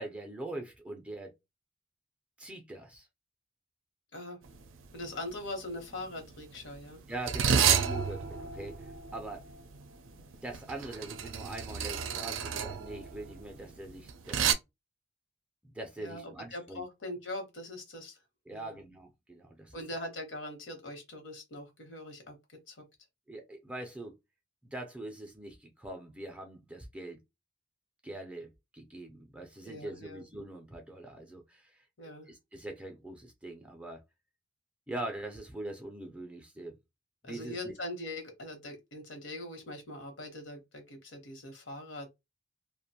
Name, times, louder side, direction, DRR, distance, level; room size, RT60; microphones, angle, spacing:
voice 1, 0.0-1.3 2.4-3.1 7.1-9.5 10.1-14.5 15.6-16.8 18.5-19.8 23.3-24.2 24.6-27.2 28.0-31.8 32.3-34.0 34.9-36.8 37.2-37.7, right 2 dB, 5° right, 0.4 m, -43 dB
sound 1, 4.5-4.7 4.9-5.3 6.0-14.5, right 7 dB, 85° right, 0.4 m, -31 dB
voice 2, 4.9-7.0 16.0-18.2 18.5-18.8 19.7-22.8 29.6-30.2 32.0-32.3 37.2-42.1, left 1 dB, 70° left, 1.0 m, -42 dB
2.5 x 2.1 x 2.8 m
head